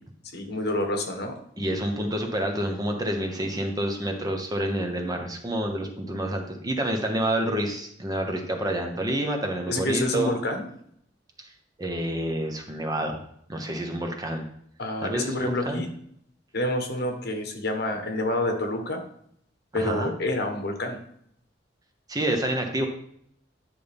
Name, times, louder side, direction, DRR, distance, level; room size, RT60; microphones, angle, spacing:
voice 1, 0.3-1.3 9.7-10.6 14.8-15.9 16.5-19.0 19.7-21.0, left 1 dB, 60° left, 4 dB, 1.2 m, -28 dB
voice 2, 1.6-10.3 11.4-11.5 11.8-13.2 13.5-14.5 15.0-15.9 19.7-20.1 22.1-22.9, right 1 dB, 20° right, 3 dB, 1.0 m, -28 dB
10.0 x 5.5 x 3.5 m, 0.68 s
head